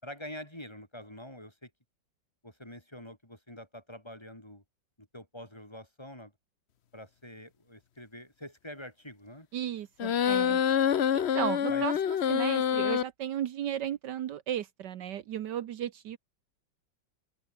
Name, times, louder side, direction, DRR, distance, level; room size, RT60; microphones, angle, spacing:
voice 1, 0.0-1.7 2.4-4.6 5.0-6.3 6.9-9.5 10.7-10.8 11.7-11.9, left 1 dB, 15° left, 4.1 m, -46 dB
voice 2, 9.5-10.6 11.1-16.2, right 10 dB, 70° right, 1.5 m, -35 dB
sound 1, 10.0-13.0, left 9 dB, 50° left, 0.8 m, -26 dB
open air
omnidirectional pair, 1.9 m